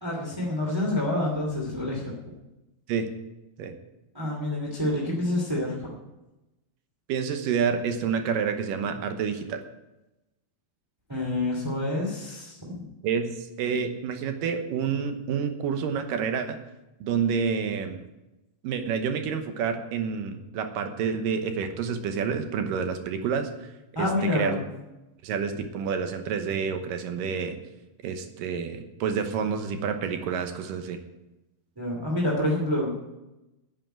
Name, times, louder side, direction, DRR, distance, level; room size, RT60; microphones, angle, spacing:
voice 1, 0.0-2.1 4.1-5.7 11.1-12.8 23.9-24.6 31.7-33.0, left 1 dB, 10° right, -3 dB, 1.4 m, -27 dB
voice 2, 7.1-9.6 13.0-16.6 17.0-18.0 18.6-23.7 24.0-24.1 24.3-24.6 25.2-27.6 28.0-31.0, right 6 dB, 70° right, 7 dB, 2.3 m, -28 dB
10.5 x 7.9 x 9.0 m, 0.98 s
omnidirectional pair, 4.6 m